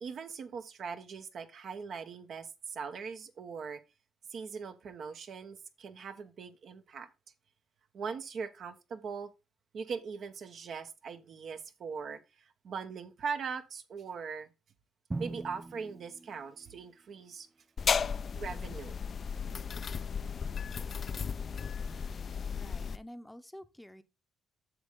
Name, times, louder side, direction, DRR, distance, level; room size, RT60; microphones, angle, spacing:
voice 1, 0.0-3.8 4.3-7.1 7.9-9.3 9.7-14.5 15.2-17.5 18.3-19.0, right 5 dB, 60° right, 1.1 m, -41 dB
Drum, 15.1-17.1, right 2 dB, 20° right, 0.3 m, -41 dB
sound 1, 17.8-23.0, left 6 dB, 45° left, 0.4 m, -34 dB
voice 2, 22.5-24.0, equal, 5° left, 0.8 m, -49 dB
8.0 x 6.5 x 3.7 m
cardioid pair, 90°, 0 cm